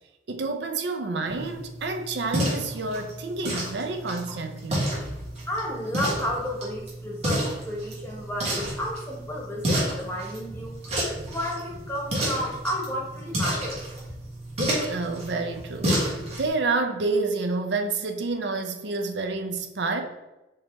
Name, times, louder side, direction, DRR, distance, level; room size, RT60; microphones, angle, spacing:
voice 1, 0.3-4.9 14.9-20.0, right 3 dB, 70° right, 5 dB, 0.5 m, -29 dB
sound 1, 1.3-16.5, right 1 dB, 35° right, 1.5 m, -31 dB
voice 2, 5.5-13.8, equal, 15° left, -1 dB, 0.9 m, -32 dB
4.8 x 2.9 x 3.3 m, 1.0 s
head